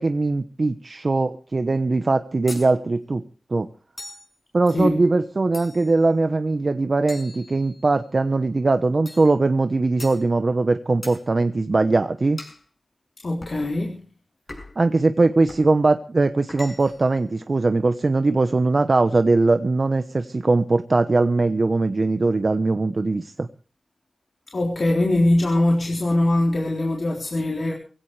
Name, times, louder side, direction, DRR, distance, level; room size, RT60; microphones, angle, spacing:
voice 1, 0.0-3.2 3.5-3.7 4.5-12.4 14.8-23.5, right 3 dB, 45° right, 9 dB, 1.0 m, -20 dB
sound 1, 2.5-2.7 4.0-4.3 5.5-6.0 7.1-8.0 9.1-9.3 10.0-10.2 11.0-11.2 12.4-12.6 13.4-13.6 14.5-14.8 15.5-15.7 16.5-17.1, left 2 dB, 35° left, 6.6 m, -40 dB
voice 2, 13.2-13.9 24.5-27.7, left 1 dB, 55° left, -1 dB, 3.8 m, -21 dB
23.0 x 16.5 x 3.3 m, 0.38 s
wide cardioid pair, 80°, 0 cm